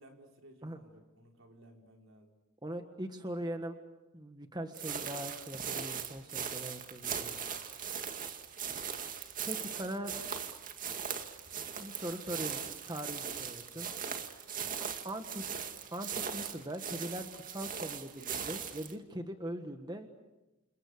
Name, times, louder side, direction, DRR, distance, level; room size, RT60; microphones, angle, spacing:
voice 1, 0.0-2.3 13.7-13.9 14.6-14.8, right 1 dB, 75° right, 2 dB, 5.1 m, -58 dB
voice 2, 2.6-3.8 4.1-7.3 9.5-10.1 11.8-13.9 15.0-15.4 15.9-20.1, right 1 dB, 20° right, 6 dB, 1.5 m, -41 dB
sound 1, 4.7-18.9, right 7 dB, 40° right, 2.1 m, -39 dB
29.5 x 28.0 x 6.7 m, 1.0 s
head